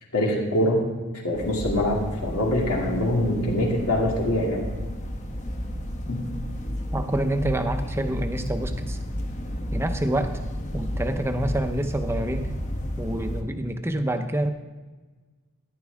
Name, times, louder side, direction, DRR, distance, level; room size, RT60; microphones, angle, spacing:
voice 1, 0.1-0.8 1.2-4.6 6.1-6.2, left 1 dB, 85° left, -2 dB, 2.6 m, -24 dB
sound 1, 1.3-13.4, equal, 35° left, 1.0 m, -32 dB
voice 2, 6.9-9.0 9.7-10.4 10.7-12.5 13.0-14.5, right 1 dB, 10° right, 7 dB, 0.6 m, -27 dB
13.5 x 11.0 x 3.5 m, 1.3 s
head